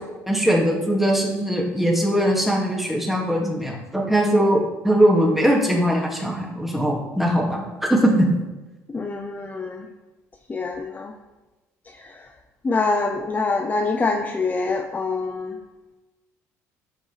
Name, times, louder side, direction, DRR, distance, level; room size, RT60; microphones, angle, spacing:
voice 1, 0.3-7.6 7.9-8.3, equal, 5° right, -2 dB, 2.3 m, -20 dB
voice 2, 8.9-9.8 10.5-11.1 12.6-15.5, left 3 dB, 25° left, 4 dB, 0.7 m, -25 dB
13.5 x 5.2 x 3.5 m, 1.1 s
cardioid pair, 100°, 7 cm